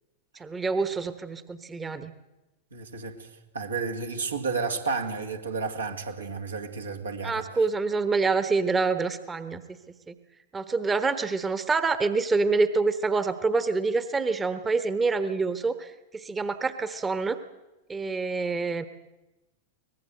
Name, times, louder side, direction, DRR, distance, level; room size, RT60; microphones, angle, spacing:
voice 1, 0.3-2.1 7.2-9.6 10.1-10.2 10.5-17.4 17.9-18.9, right 4 dB, 15° right, 1.2 m, -26 dB
voice 2, 2.7-3.3 3.5-7.4, right 4 dB, 75° right, 2.5 m, -31 dB
23.5 x 19.5 x 7.9 m
figure-of-eight pair, 90°, 0 cm